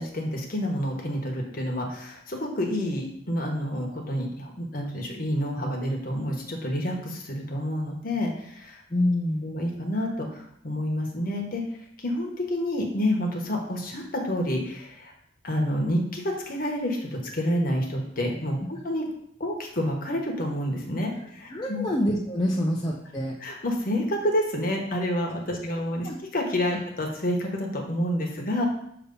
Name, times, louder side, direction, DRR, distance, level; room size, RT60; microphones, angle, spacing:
voice 1, 0.0-8.8 9.4-11.6 12.0-15.1 15.4-19.1 19.4-21.9 23.4-28.6, equal, 45° left, 1 dB, 1.1 m, -29 dB
voice 2, 8.9-9.5 21.5-23.3 26.0-26.2 26.7-26.8, left 1 dB, 20° left, -3 dB, 0.5 m, -26 dB
6.8 x 2.9 x 5.3 m, 0.73 s
head